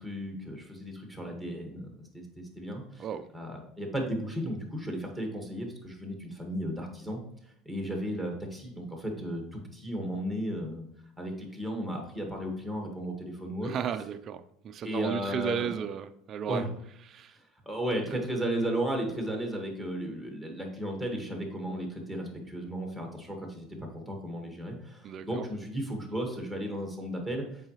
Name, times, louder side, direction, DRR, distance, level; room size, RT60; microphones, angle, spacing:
voice 1, 0.0-3.0 3.3-7.2 7.7-10.8 11.2-13.7 14.8-15.7 16.5-16.6 17.7-27.4, equal, 5° left, 1.7 m, -34 dB
voice 2, 13.6-16.7 17.0-17.4 18.1-18.2 25.0-25.5, right 8 dB, 40° right, 0.4 m, -34 dB
7.3 x 4.7 x 3.1 m
supercardioid pair, 120°, 0 cm